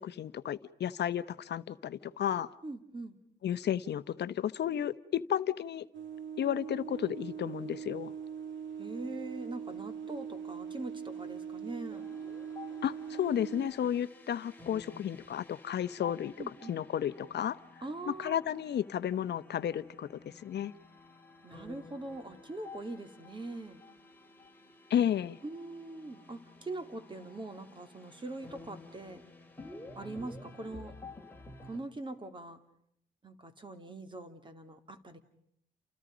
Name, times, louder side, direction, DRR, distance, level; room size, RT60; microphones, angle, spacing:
voice 1, 0.0-2.5 3.4-5.9 6.4-8.1 12.8-16.3 16.7-17.6 18.1-20.7 24.9-25.4, left 10 dB, 60° left, 14 dB, 0.9 m, -33 dB
voice 2, 2.6-3.2 8.8-12.1 16.4-16.8 17.8-18.3 21.4-23.8 25.4-29.2 30.0-30.9 31.6-32.6 33.2-35.2, right 2 dB, 25° right, 8 dB, 2.6 m, -42 dB
sound 1, 5.9-13.7, right 7 dB, 70° right, 2.7 m, -41 dB
sound 2, 11.9-31.8, left 3 dB, 10° left, 3.2 m, -52 dB
29.5 x 28.5 x 5.1 m, 0.70 s
cardioid pair, 90°, 20 cm